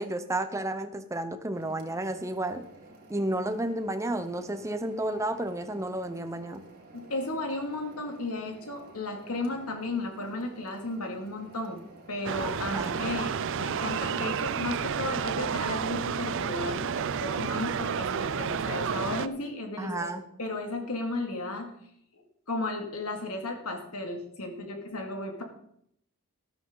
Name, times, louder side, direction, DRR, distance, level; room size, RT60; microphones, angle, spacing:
voice 1, 0.0-2.7 3.1-6.6 12.7-13.0 19.8-20.2, right 1 dB, 15° right, 8 dB, 0.8 m, -31 dB
sound 1, 1.5-16.3, right 2 dB, 45° right, 2.3 m, -52 dB
voice 2, 6.9-20.1 20.4-21.7 22.5-25.4, left 2 dB, 85° left, 3 dB, 2.4 m, -34 dB
sound 2, 12.2-19.3, right 7 dB, 60° right, 0.5 m, -31 dB
13.0 x 12.0 x 4.0 m, 0.71 s
head